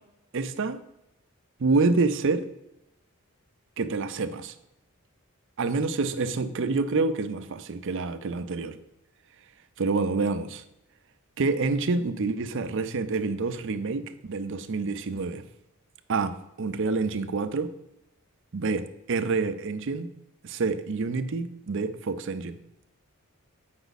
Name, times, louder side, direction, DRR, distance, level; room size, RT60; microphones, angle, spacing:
voice 1, 0.3-0.8 1.6-2.5 3.8-4.5 5.6-8.8 9.8-10.6 11.4-15.4 16.1-17.7 18.5-20.1 20.4-22.6, right 3 dB, 55° right, 10 dB, 0.5 m, -27 dB
8.0 x 5.6 x 4.0 m, 0.87 s
head